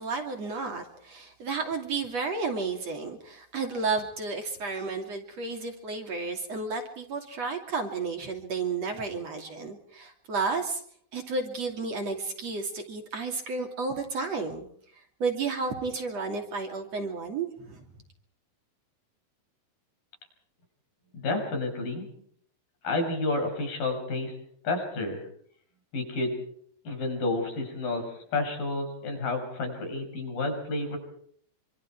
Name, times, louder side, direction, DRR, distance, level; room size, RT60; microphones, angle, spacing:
voice 1, 0.0-10.8 11.1-14.7 15.2-17.8, right 4 dB, 45° right, 4 dB, 3.6 m, -32 dB
voice 2, 21.1-22.1 22.8-24.4 24.6-25.2 25.9-26.4 26.8-31.0, left 2 dB, 70° left, 4 dB, 7.9 m, -30 dB
27.0 x 25.5 x 4.7 m, 0.63 s
omnidirectional pair, 4.2 m